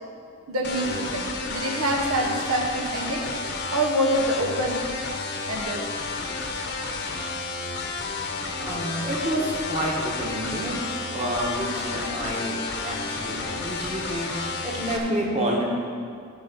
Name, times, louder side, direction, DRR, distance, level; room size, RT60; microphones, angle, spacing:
voice 1, 0.5-3.2 3.7-4.8 5.5-5.8, right 1 dB, 80° right, 1 dB, 1.1 m, -26 dB
sound 1, 0.6-15.0, left 3 dB, 50° left, 0.9 m, -31 dB
voice 2, 8.6-10.8 11.1-15.6, right 1 dB, 30° right, -2 dB, 1.5 m, -29 dB
14.5 x 5.2 x 5.3 m, 2.2 s
head